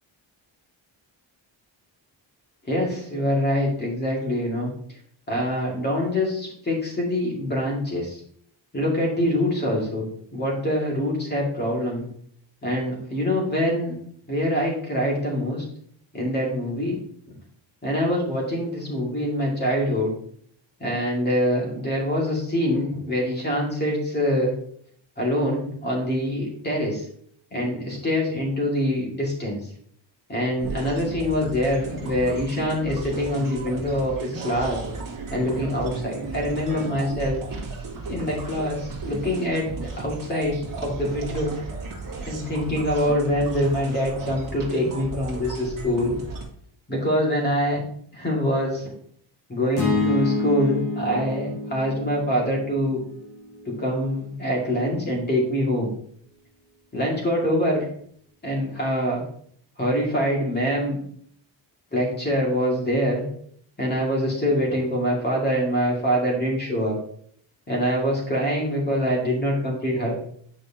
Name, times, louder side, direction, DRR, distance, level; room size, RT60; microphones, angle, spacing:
voice 1, 2.6-4.7 5.3-8.2 8.7-12.1 12.6-14.0 14.3-15.6 16.1-17.0 17.3-17.4 17.8-20.1 20.8-24.5 25.2-27.1 27.5-29.7 30.3-34.8 35.3-37.4 38.1-41.5 42.2-46.1 46.9-47.8 48.1-48.9 49.5-53.0 53.7-55.9 56.9-57.9 58.4-59.2 59.8-61.0 61.9-63.2 63.8-67.0 67.7-70.1, equal, 20° left, -2 dB, 2.2 m, -24 dB
sound 1, 30.6-46.4, right 3 dB, 45° right, 1.8 m, -35 dB
sound 2, 49.8-54.0, left 3 dB, 50° left, 1.8 m, -28 dB
9.0 x 5.0 x 2.8 m, 0.63 s
wide cardioid pair, 180°, 47 cm